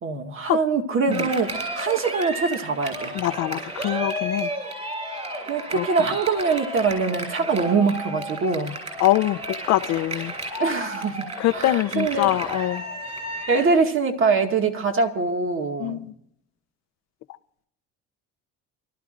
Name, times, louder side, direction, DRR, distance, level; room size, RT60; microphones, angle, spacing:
voice 1, 0.0-3.1 5.5-8.8 10.6-11.3 11.5-12.3 13.5-16.1, right 4 dB, 45° right, 2.1 m, -23 dB
Cheering, 1.1-13.8, right 1 dB, 20° right, 7.5 m, -32 dB
voice 2, 3.1-4.5 5.7-5.9 9.0-10.3 11.4-12.8 15.8-16.1, left 15 dB, 65° left, 0.7 m, -23 dB
28.5 x 13.0 x 2.6 m
cardioid pair, 110°, 29 cm